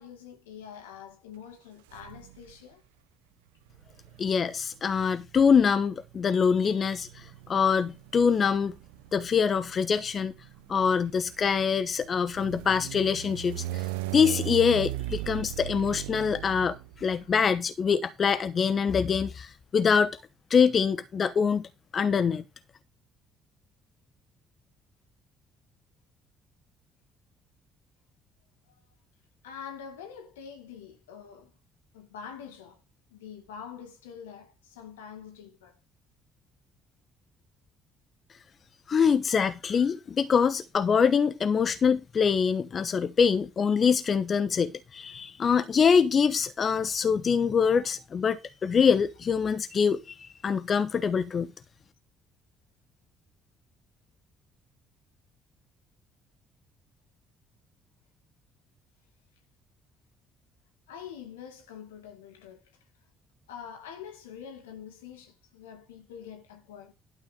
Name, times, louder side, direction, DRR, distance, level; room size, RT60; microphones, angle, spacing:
voice 1, 0.0-2.8 4.9-5.0 17.2-17.3 29.4-31.5 31.9-32.8 33.1-35.8 42.2-42.3 60.9-62.6 63.5-66.9, left 8 dB, 90° left, 2.1 m, -45 dB
sound 1, 1.9-2.6 3.7-17.4, right 15 dB, 85° right, 0.7 m, -39 dB
voice 2, 4.2-8.7 9.1-10.3 10.7-13.9 14.1-20.1 20.5-21.7 21.9-22.4 38.9-51.5, left 6 dB, 50° left, 1.0 m, -24 dB
12.0 x 5.9 x 5.2 m
hypercardioid pair, 55°, 0 cm